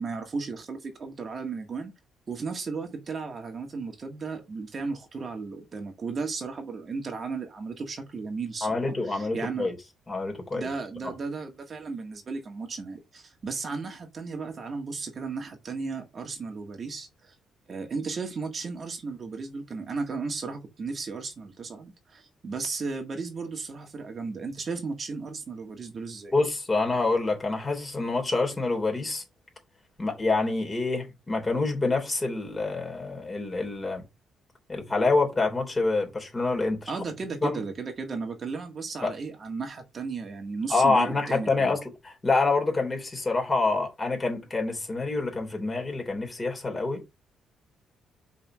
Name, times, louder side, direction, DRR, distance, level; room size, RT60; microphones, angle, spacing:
voice 1, 0.0-1.9 2.3-9.7 10.5-17.3 17.7-26.3 36.9-41.8, right 4 dB, 45° right, 1.8 m, -35 dB
voice 2, 8.6-9.8 10.1-10.7 11.0-11.1 26.3-29.2 30.0-34.0 34.7-36.9 37.4-37.6 39.0-39.1 40.7-47.0, left 3 dB, 20° left, 3.3 m, -27 dB
5.6 x 4.1 x 6.1 m
cardioid pair, 90°, 0 cm